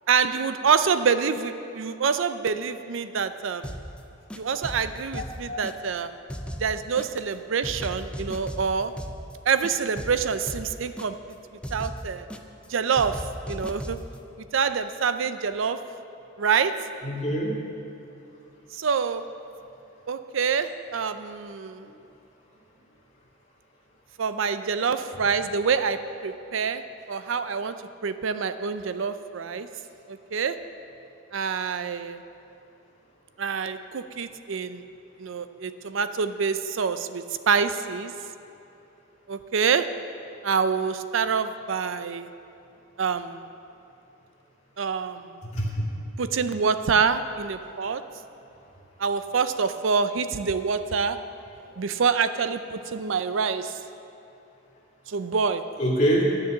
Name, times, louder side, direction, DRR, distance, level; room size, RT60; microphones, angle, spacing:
voice 1, 0.1-3.7 4.3-6.1 6.6-8.9 9.5-11.1 11.7-12.3 12.7-13.2 13.5-14.0 14.5-15.8 16.4-16.7 18.7-19.2 20.1-21.9 24.2-26.8 27.1-27.7 28.0-29.7 30.1-30.6 31.3-32.2 33.4-34.8 35.2-38.1 39.3-39.9 40.4-42.3 43.0-43.4 44.8-45.3 46.2-48.0 49.0-51.2 51.8-53.7 55.1-55.6, right 6 dB, 65° right, 11 dB, 0.5 m, -26 dB
sound 1, 3.6-4.0 4.3-6.0 6.3-7.3 7.6-9.3 9.6-11.3 11.6-12.7 13.0-14.2, equal, 5° left, 0.4 m, -37 dB
voice 2, 5.1-5.6 17.0-17.6 45.4-45.9 51.6-51.7 55.8-56.2, equal, 35° left, -5 dB, 2.3 m, -25 dB
10.5 x 6.7 x 7.6 m, 2.7 s
head